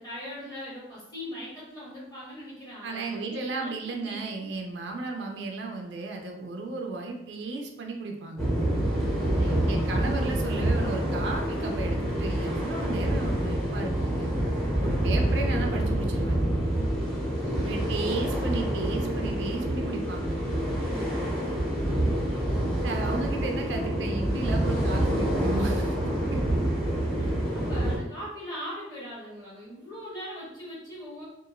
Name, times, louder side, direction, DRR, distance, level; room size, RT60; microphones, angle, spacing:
voice 1, 0.0-4.4 9.3-10.1 17.1-18.4 21.1-22.1 27.2-31.2, equal, 20° left, -8 dB, 1.2 m, -41 dB
voice 2, 2.8-8.5 9.7-14.3 14.8-16.4 17.6-20.4 22.8-26.4, right 3 dB, 70° right, 2 dB, 0.4 m, -34 dB
sound 1, 8.4-28.0, right 1 dB, 5° left, 0.6 m, -27 dB
2.8 x 2.5 x 2.4 m, 0.92 s
head